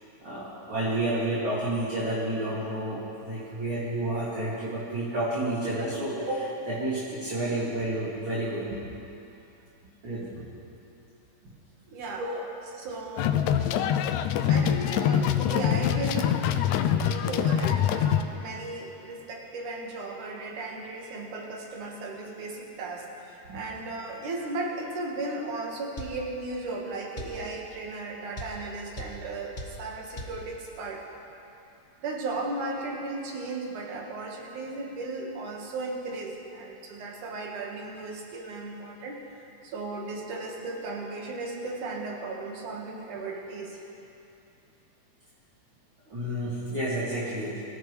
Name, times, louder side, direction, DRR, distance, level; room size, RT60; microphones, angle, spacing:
voice 1, 0.2-8.8 10.0-10.4 12.2-12.4 13.3-13.4 23.5-23.6 46.1-47.6, right 1 dB, 45° right, -9 dB, 3.0 m, -30 dB
voice 2, 11.9-12.3 12.7-13.4 14.5-16.4 17.0-31.0 32.0-39.2 39.6-43.8, right 2 dB, 90° right, -1 dB, 3.2 m, -36 dB
sound 1, 13.2-18.2, left 9 dB, 85° left, 2.0 m, -24 dB
sound 2, 26.0-26.2 27.2-27.4 28.4-28.6 29.0-29.2 29.6-29.8 30.2-30.4, left 1 dB, 45° left, 0.6 m, -37 dB
24.5 x 14.5 x 3.2 m, 2.8 s
omnidirectional pair, 3.4 m